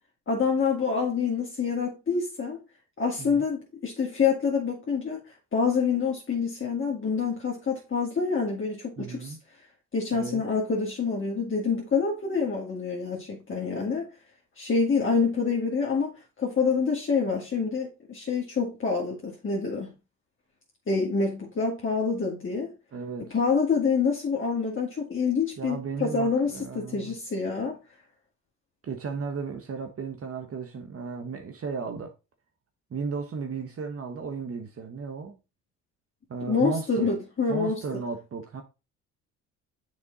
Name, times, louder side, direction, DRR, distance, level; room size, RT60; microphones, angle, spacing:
voice 1, 0.3-2.6 3.0-5.2 5.5-9.3 9.9-14.1 14.6-16.1 16.4-19.9 20.9-22.7 23.2-27.8 36.5-37.8, left 5 dB, 35° left, 2.5 m, -27 dB
voice 2, 9.0-9.4 10.1-10.4 22.9-23.4 25.6-27.2 28.8-32.1 32.9-35.4 36.3-37.1 37.5-38.6, right 5 dB, 40° right, 1.3 m, -35 dB
6.8 x 5.3 x 4.1 m
supercardioid pair, 65°, 35 cm